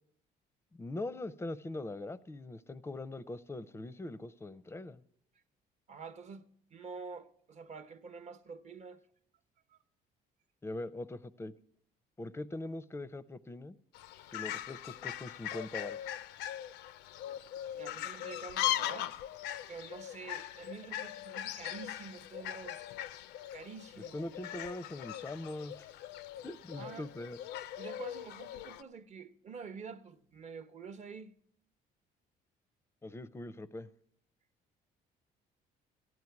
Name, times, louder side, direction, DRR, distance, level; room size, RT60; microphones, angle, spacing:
voice 1, 0.7-5.0 10.6-11.5 12.2-13.8 14.3-16.1 24.1-25.9 26.4-27.4 33.0-33.9, left 2 dB, 15° left, 0.5 m, -42 dB
voice 2, 5.9-9.0 9.7-9.8 17.8-19.1 19.7-22.8 23.5-24.2 26.8-27.1 27.8-31.3, right 5 dB, 45° right, 0.9 m, -47 dB
Fowl, 13.9-28.8, left 12 dB, 85° left, 0.5 m, -40 dB
15.0 x 9.5 x 5.8 m
cardioid pair, 110°, 17 cm